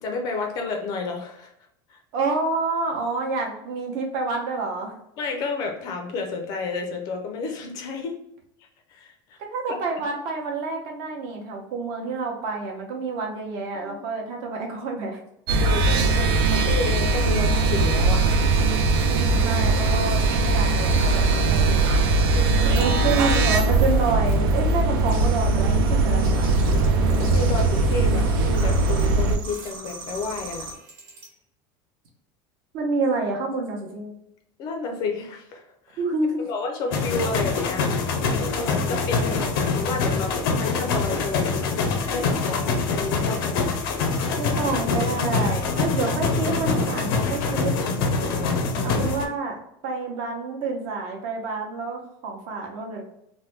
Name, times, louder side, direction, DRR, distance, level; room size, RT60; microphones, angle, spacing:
voice 1, 0.0-1.5 1.9-2.0 5.2-8.1 8.9-9.4 13.8-14.0 15.6-18.4 22.3-22.9 27.2-30.7 34.6-36.0 36.4-37.9 38.4-43.8 48.2-48.5, left 4 dB, 35° left, 3 dB, 0.4 m, -31 dB
voice 2, 2.1-4.9 9.4-15.2 19.0-22.0 22.6-26.5 32.7-34.1 36.0-36.5 44.4-47.7 48.8-49.5 49.8-53.0, right 3 dB, 50° right, 1 dB, 0.8 m, -28 dB
sound 1, 15.5-29.4, right 3 dB, 80° right, 0.5 m, -20 dB
sound 2, 18.7-31.3, right 1 dB, 65° right, 1.2 m, -38 dB
sound 3, 36.9-49.2, left 4 dB, 90° left, 0.6 m, -24 dB
3.2 x 2.1 x 3.1 m, 0.77 s
cardioid pair, 180°, 12 cm